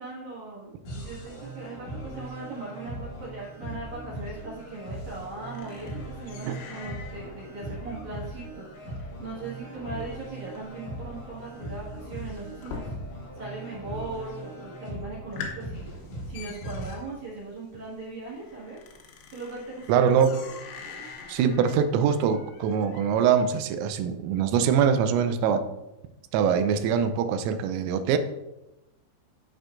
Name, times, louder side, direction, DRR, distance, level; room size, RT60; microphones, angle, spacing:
voice 1, 0.0-12.9 13.4-16.0 16.2-18.9 19.3-20.1 20.4-20.5 20.8-21.1, right 3 dB, 55° right, -6 dB, 2.2 m, -39 dB
sound 1, 0.8-16.9, right 1 dB, 50° left, 4.1 m, -39 dB
sound 2, 3.9-13.5 13.7-14.3 14.7-14.8 15.1-23.5, left 5 dB, 75° left, 2.9 m, -45 dB
voice 2, 19.9-20.4 21.3-25.6 26.3-28.2, right 7 dB, 90° right, 9 dB, 3.2 m, -23 dB
13.5 x 4.5 x 2.5 m, 0.96 s
omnidirectional pair, 5.8 m